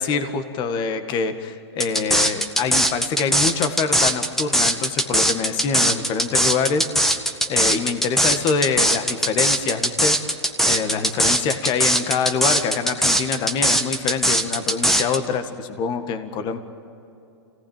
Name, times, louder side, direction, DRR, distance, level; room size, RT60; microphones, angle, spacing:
voice 1, 0.0-10.4 10.6-16.6, left 5 dB, 35° left, 9 dB, 1.9 m, -25 dB
sound 1, 1.8-15.2, equal, ahead, 1.5 m, -20 dB
27.0 x 18.0 x 9.1 m, 2.9 s
hypercardioid pair, 125°, 14 cm